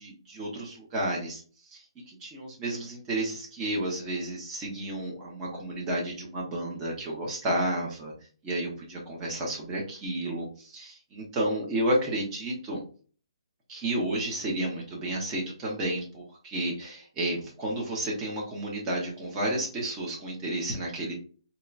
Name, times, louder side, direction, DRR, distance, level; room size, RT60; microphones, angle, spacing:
voice 1, 0.0-1.4 1.7-8.1 8.4-12.8 13.7-21.1, right 1 dB, 15° right, -3 dB, 0.8 m, -31 dB
4.3 x 2.1 x 2.4 m, 0.41 s
hypercardioid pair, 170°, 3 cm